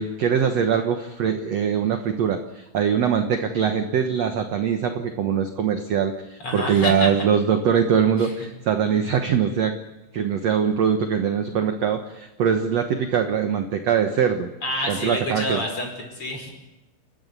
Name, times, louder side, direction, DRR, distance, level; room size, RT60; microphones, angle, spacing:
voice 1, 0.0-9.7 10.1-14.5 14.9-15.6, right 7 dB, 70° right, 6 dB, 1.6 m, -22 dB
voice 2, 6.4-7.1 8.2-8.5 14.6-16.5, left 1 dB, 30° left, 2 dB, 6.0 m, -28 dB
29.5 x 14.5 x 9.5 m, 1.0 s
omnidirectional pair, 4.7 m